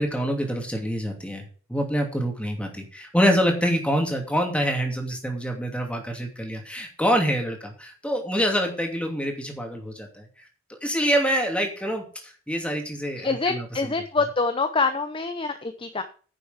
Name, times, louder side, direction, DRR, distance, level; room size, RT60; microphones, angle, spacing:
voice 1, 0.0-1.4 1.7-10.2 10.7-13.9, equal, 5° left, 2 dB, 2.7 m, -26 dB
voice 2, 13.2-16.0, left 4 dB, 25° left, 8 dB, 0.7 m, -25 dB
10.5 x 6.9 x 5.8 m, 0.41 s
head